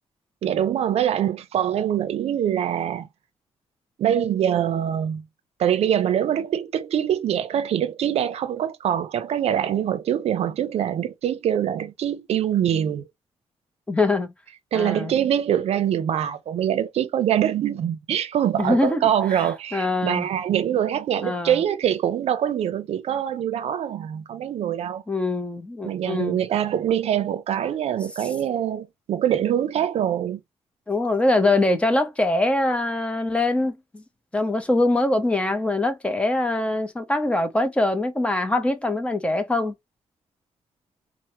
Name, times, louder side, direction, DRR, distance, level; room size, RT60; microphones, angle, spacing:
voice 1, 0.4-3.1 4.0-5.2 5.6-13.1 14.7-25.0 25.8-30.4, right 10 dB, 70° right, 0.6 m, -24 dB
voice 2, 13.9-14.3 14.7-15.1 18.6-19.0 19.7-20.3 21.2-21.6 25.1-26.4 30.9-34.0 34.3-39.7, left 2 dB, 10° left, 0.6 m, -23 dB
4.4 x 2.1 x 2.9 m
wide cardioid pair, 175°, 11 cm